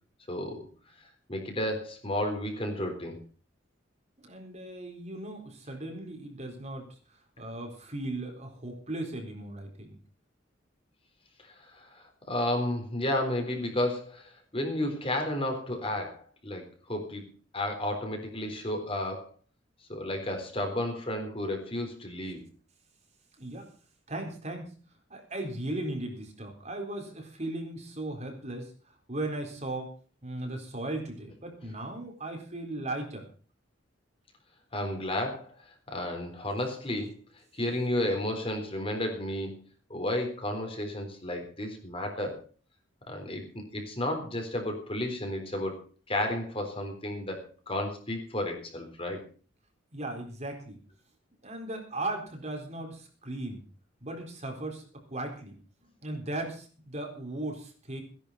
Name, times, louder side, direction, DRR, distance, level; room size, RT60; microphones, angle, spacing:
voice 1, 0.3-0.6 1.3-3.2 11.7-17.2 17.5-19.3 19.9-22.4 34.7-35.5 35.9-37.1 37.5-39.6 39.9-42.4 43.1-45.8 46.1-49.2, left 1 dB, 30° left, 4 dB, 3.9 m, -32 dB
voice 2, 4.2-6.9 7.4-10.0 23.4-23.7 24.1-24.7 25.1-29.9 30.2-33.3 49.9-50.8 51.4-53.6 54.0-55.6 56.0-58.0, right 2 dB, 35° right, 3 dB, 4.1 m, -37 dB
17.0 x 11.0 x 5.7 m, 0.40 s
head